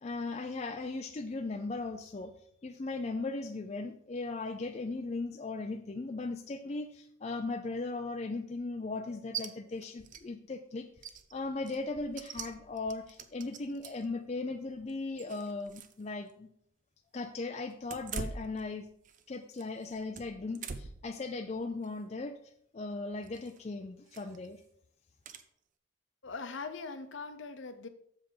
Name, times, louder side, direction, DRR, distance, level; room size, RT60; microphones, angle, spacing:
voice 1, 0.0-2.3 2.6-10.9 11.3-16.5 17.1-18.9 19.3-22.3 22.7-24.6, left 3 dB, 30° left, 6 dB, 0.4 m, -38 dB
sound 1, 9.3-9.5 9.8-10.2 10.5-10.6 11.0-14.1 14.7-16.0 16.3-16.4 17.8-19.2 19.5-21.1 21.6-21.9 23.2-23.6 24.1-24.5 25.3-25.4, right 5 dB, 40° right, 0.5 m, -44 dB
voice 2, 26.2-27.9, left 4 dB, 65° left, 9 dB, 0.8 m, -41 dB
7.2 x 5.2 x 5.6 m, 0.68 s
head